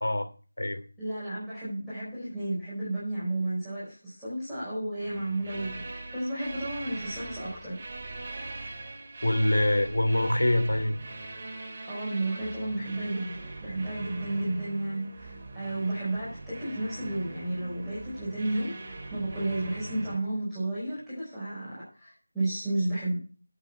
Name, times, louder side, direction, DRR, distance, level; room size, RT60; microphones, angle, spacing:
voice 1, 1.0-7.8 11.9-13.3 13.6-23.2, right 2 dB, ahead, -16 dB, 4.9 m, -32 dB
sound 1, 5.0-20.2, right 2 dB, 25° right, 2.5 m, -41 dB
voice 2, 9.2-11.0, left 1 dB, 70° left, 7 dB, 2.6 m, -24 dB
10.0 x 8.3 x 5.7 m, 0.37 s
figure-of-eight pair, 170°, 0 cm